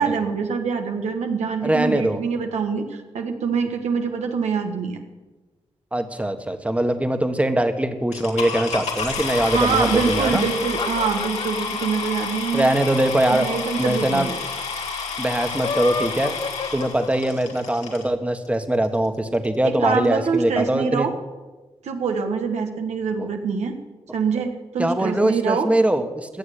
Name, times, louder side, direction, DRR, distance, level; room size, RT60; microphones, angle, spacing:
voice 1, 0.0-5.0 9.5-12.7 13.3-14.3 19.6-21.1 21.8-23.8 24.1-25.7, right 5 dB, 90° right, 4 dB, 1.5 m, -24 dB
voice 2, 1.6-2.2 5.9-10.4 12.5-13.5 13.8-14.3 15.2-16.3 16.7-21.1 23.2-23.3 24.8-26.4, right 1 dB, 10° right, 8 dB, 1.5 m, -22 dB
sound 1, 8.1-18.1 18.8-18.9 19.4-19.5 19.7-20.1, left 4 dB, 80° left, 2.5 m, -29 dB
sound 2, 10.4-13.8 14.0-14.1 14.3-14.4 15.4-17.6, left 5 dB, 50° left, 0.9 m, -31 dB
17.0 x 7.1 x 9.9 m, 1.2 s
cardioid pair, 85°, 11 cm